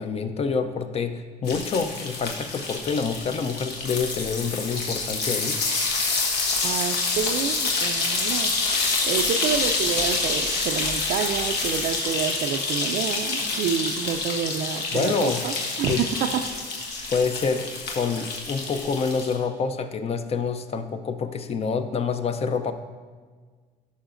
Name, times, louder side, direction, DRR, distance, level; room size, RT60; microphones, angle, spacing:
voice 1, 0.0-5.6 14.9-15.4 15.9-16.1 17.1-22.7, left 5 dB, 35° left, 9 dB, 0.5 m, -27 dB
sound 1, 1.5-19.4, left 3 dB, 75° left, 1.2 m, -27 dB
voice 2, 6.6-8.5 9.0-16.3, right 8 dB, 65° right, 4 dB, 0.4 m, -28 dB
11.5 x 5.6 x 2.5 m, 1.5 s
cardioid pair, 110°, 17 cm